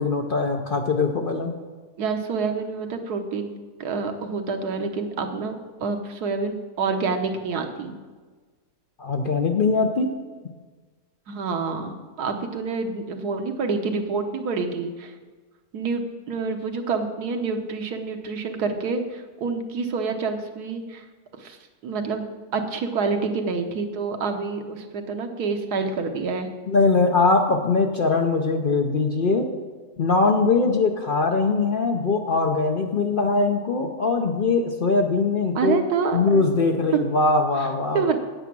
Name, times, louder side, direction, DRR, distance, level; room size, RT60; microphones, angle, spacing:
voice 1, 0.0-1.5 9.0-10.1 26.7-29.5 30.0-35.8 36.1-38.1, left 3 dB, 50° left, 3 dB, 0.6 m, -21 dB
voice 2, 2.0-3.5 3.8-5.5 5.8-8.0 11.3-15.1 15.7-21.0 21.4-21.6 21.8-22.3 22.5-26.5 30.5-30.7 35.5-36.4 37.9-38.2, right 4 dB, 90° right, 5 dB, 1.5 m, -27 dB
8.9 x 8.3 x 6.0 m, 1.4 s
omnidirectional pair, 1.6 m